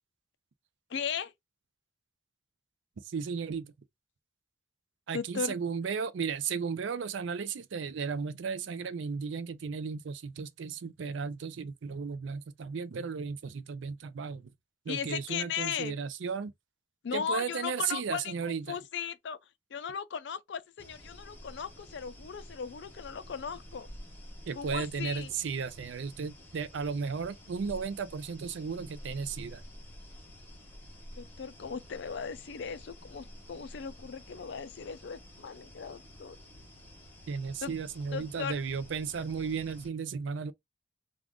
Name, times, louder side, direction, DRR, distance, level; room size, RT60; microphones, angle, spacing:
voice 1, 0.9-1.3 5.1-5.6 14.9-16.0 17.0-19.4 19.7-23.9 24.6-25.3 31.2-36.4 37.6-37.7 38.1-38.5, left 7 dB, 60° left, 0.4 m, -37 dB
voice 2, 3.0-3.7 5.1-14.5 14.9-16.5 17.1-18.8 24.5-29.6 37.3-40.5, right 5 dB, 70° right, 0.4 m, -35 dB
sound 1, 20.8-39.9, equal, 10° left, 0.7 m, -50 dB
2.4 x 2.4 x 3.3 m
head